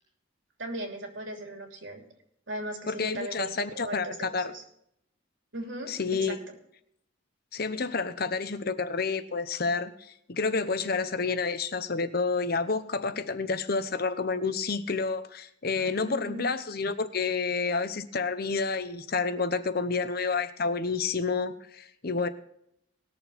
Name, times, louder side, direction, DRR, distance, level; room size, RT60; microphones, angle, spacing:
voice 1, 0.6-2.0 2.5-4.6 5.5-6.4 16.0-16.5, right 1 dB, 75° right, 2 dB, 3.0 m, -38 dB
voice 2, 2.9-4.5 5.9-6.4 7.5-9.9 10.3-22.3, left 4 dB, 50° left, 11 dB, 0.9 m, -29 dB
19.5 x 7.0 x 4.2 m, 0.74 s
head